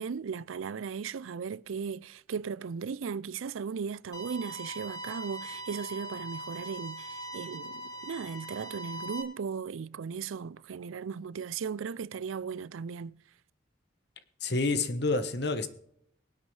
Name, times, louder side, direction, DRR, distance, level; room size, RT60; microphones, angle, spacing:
voice 1, 0.0-13.2, right 6 dB, 90° right, 0.4 m, -37 dB
sound 1, 4.1-9.2, right 1 dB, 20° left, 1.5 m, -41 dB
voice 2, 14.4-15.7, left 3 dB, 55° left, 1.2 m, -28 dB
24.5 x 8.2 x 3.3 m
head